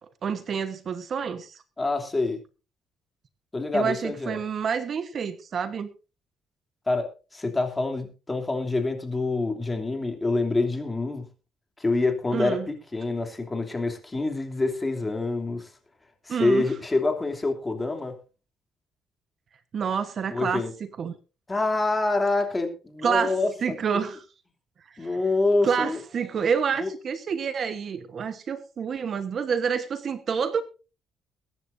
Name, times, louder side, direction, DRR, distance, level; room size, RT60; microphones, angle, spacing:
voice 1, 0.0-1.6 3.7-5.9 12.3-12.7 16.3-16.7 19.7-21.2 23.0-23.4 23.6-24.2 25.0-25.2 25.6-30.6, right 6 dB, 45° right, 11 dB, 1.2 m, -28 dB
voice 2, 1.8-2.4 3.5-4.4 6.9-7.1 7.3-11.2 11.8-15.7 16.2-18.1 20.3-20.7 21.5-24.1 25.0-26.0 26.8-26.9, left 3 dB, 15° left, 5 dB, 3.0 m, -26 dB
22.0 x 10.5 x 2.7 m, 0.33 s
cardioid pair, 125°, 0 cm